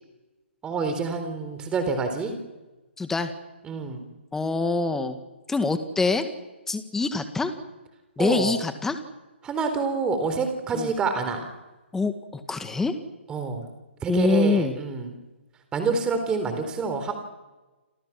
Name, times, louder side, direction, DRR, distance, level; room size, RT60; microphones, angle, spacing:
voice 1, 0.6-2.3 3.6-4.0 8.2-8.5 9.4-11.5 13.3-13.6 14.0-15.2 15.7-17.1, right 4 dB, 15° right, 7 dB, 4.0 m, -27 dB
voice 2, 3.0-3.3 4.3-5.2 5.5-6.3 6.7-7.5 8.2-9.0 10.7-10.9 11.9-12.9 14.1-14.8, left 3 dB, 5° left, 8 dB, 2.0 m, -25 dB
30.0 x 26.0 x 6.1 m, 1.1 s
figure-of-eight pair, 140°, 7 cm